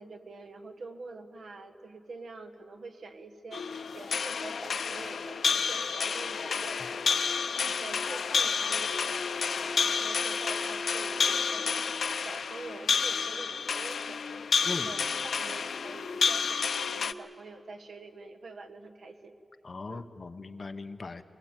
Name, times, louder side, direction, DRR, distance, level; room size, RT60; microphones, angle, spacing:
voice 1, 0.0-11.8 12.2-19.4 19.9-20.0, right 3 dB, 85° right, 6 dB, 1.4 m, -46 dB
sound 1, 3.5-17.1, left 6 dB, 85° left, 0.6 m, -30 dB
voice 2, 19.6-21.2, left 3 dB, 40° left, 9 dB, 0.9 m, -39 dB
23.0 x 19.5 x 9.0 m, 2.5 s
wide cardioid pair, 160°, 0 cm